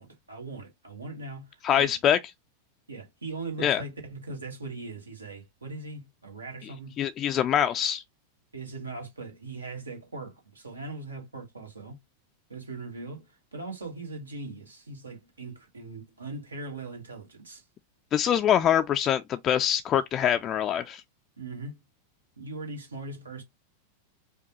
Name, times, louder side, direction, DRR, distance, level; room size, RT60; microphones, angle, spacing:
voice 1, 0.0-1.9 2.9-7.0 8.5-12.0 12.5-17.6 21.4-21.8 22.4-23.4, right 3 dB, 75° right, 1.6 m, -40 dB
voice 2, 1.6-2.2 3.6-3.8 7.0-8.0 18.1-21.0, left 9 dB, 30° left, 0.3 m, -24 dB
5.2 x 2.3 x 2.8 m
figure-of-eight pair, 90°, 0 cm